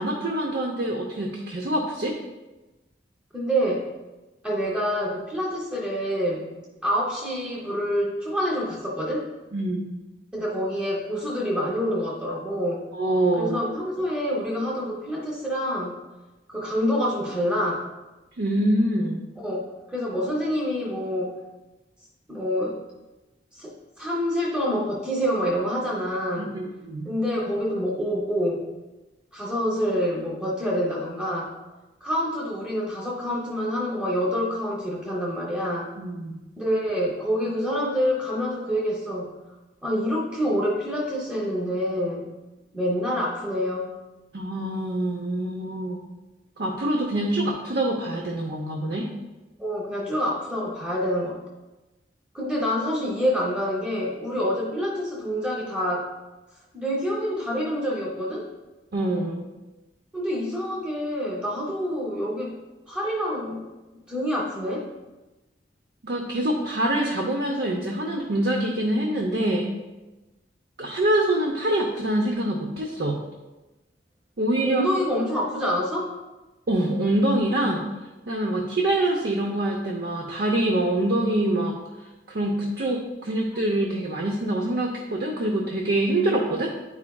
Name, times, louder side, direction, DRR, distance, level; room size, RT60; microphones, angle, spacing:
voice 1, 0.0-2.1 9.5-9.9 12.9-13.6 18.4-19.2 26.4-27.1 36.0-36.4 44.3-46.0 46.6-49.1 58.9-59.5 66.0-69.7 70.8-73.2 74.4-74.8 76.7-77.9 78.3-81.8 82.3-86.7, right 1 dB, 65° right, 0 dB, 0.7 m, -25 dB
voice 2, 3.3-3.9 4.4-6.5 6.8-9.3 10.3-12.8 13.4-16.0 16.5-17.9 19.4-21.4 22.3-22.8 23.6-26.5 27.0-28.6 29.3-31.5 32.0-35.9 36.6-39.3 39.8-42.3 42.7-43.9 49.6-51.4 52.3-56.1 56.7-58.5 60.1-62.5 62.9-63.6 64.1-64.9 74.6-76.1, equal, 5° right, -4 dB, 0.8 m, -27 dB
9.6 x 4.8 x 2.3 m, 1.1 s
head